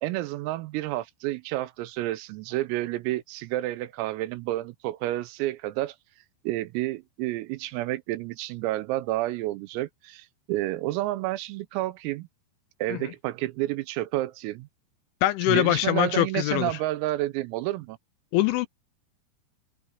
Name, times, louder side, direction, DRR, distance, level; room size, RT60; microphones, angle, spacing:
voice 1, 0.0-6.0 6.5-12.3 12.8-14.7 15.5-18.0, right 16 dB, 90° right, 3.7 m, -30 dB
voice 2, 15.2-16.8 18.3-18.7, left 16 dB, 80° left, 3.0 m, -23 dB
open air
omnidirectional pair, 5.9 m